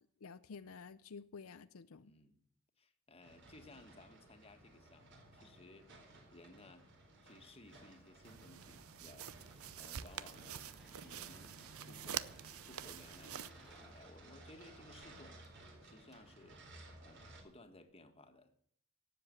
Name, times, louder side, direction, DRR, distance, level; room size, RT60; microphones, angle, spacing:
voice 1, 0.0-2.1, left 5 dB, 80° left, 0.6 m, -52 dB
voice 2, 2.0-2.4 2.8-5.9 6.3-6.9 7.2-9.3 9.8-10.7 11.0-12.3 12.6-15.4 15.8-16.6 17.0-18.6, left 2 dB, 25° left, 1.7 m, -59 dB
sound 1, 3.2-17.4, right 1 dB, 55° right, 4.1 m, -58 dB
sound 2, 8.2-13.5, right 9 dB, 85° right, 0.7 m, -47 dB
Engine / Mechanisms, 9.2-17.6, equal, ahead, 2.1 m, -66 dB
17.5 x 7.7 x 7.8 m
head